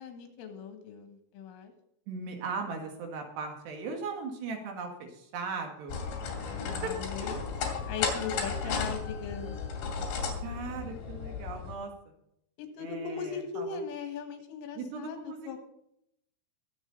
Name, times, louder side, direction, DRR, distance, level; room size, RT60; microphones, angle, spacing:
voice 1, 0.0-1.7 6.4-7.4 7.9-9.6 12.6-15.6, left 6 dB, 85° left, 5 dB, 4.5 m, -39 dB
voice 2, 2.1-6.0 6.8-6.9 8.7-8.8 10.4-11.9 12.8-13.7 14.8-15.6, right 4 dB, 65° right, 3 dB, 3.7 m, -38 dB
sound 1, 5.9-11.7, left 5 dB, 70° left, 4.7 m, -34 dB
23.0 x 7.7 x 4.0 m, 0.75 s
omnidirectional pair, 5.6 m